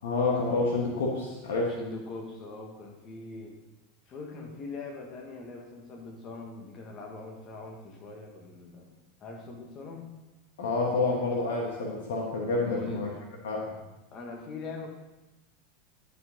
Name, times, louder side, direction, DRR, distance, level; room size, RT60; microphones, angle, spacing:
voice 1, 0.0-1.8 10.6-13.1 13.4-13.8, left 3 dB, 70° left, -1 dB, 1.4 m, -28 dB
voice 2, 1.7-3.6 4.1-8.9 9.2-10.1 12.7-13.1 14.1-14.9, left 3 dB, 40° left, 1 dB, 1.7 m, -42 dB
11.0 x 5.4 x 3.8 m, 1.0 s
hypercardioid pair, 85°, 0 cm